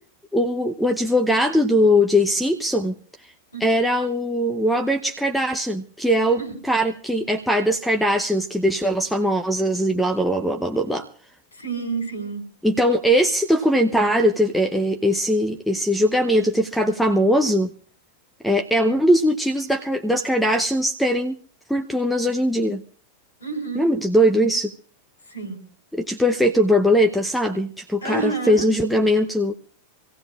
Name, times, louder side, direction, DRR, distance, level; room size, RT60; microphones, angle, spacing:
voice 1, 0.3-2.9 3.6-6.4 6.7-11.0 12.6-17.7 18.4-21.4 21.7-22.8 23.8-24.7 25.9-29.5, equal, ahead, 5 dB, 0.7 m, -20 dB
voice 2, 11.5-12.4 23.4-23.9 25.3-25.6 28.0-28.7, right 4 dB, 75° left, 2 dB, 3.8 m, -29 dB
26.0 x 16.0 x 2.4 m, 0.43 s
figure-of-eight pair, 90°, 0 cm